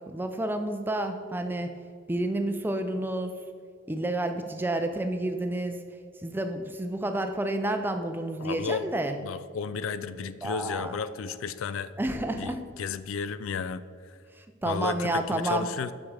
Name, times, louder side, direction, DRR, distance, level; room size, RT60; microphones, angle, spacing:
voice 1, 0.1-1.7 2.1-3.3 3.9-5.8 6.2-9.2 10.4-11.0 12.0-12.6 14.3-15.7, right 1 dB, 10° right, 6 dB, 0.4 m, -30 dB
voice 2, 8.4-8.9 9.2-11.9 12.3-14.2 14.7-15.9, left 6 dB, 75° left, 14 dB, 0.3 m, -33 dB
8.7 x 6.1 x 3.3 m, 2.2 s
head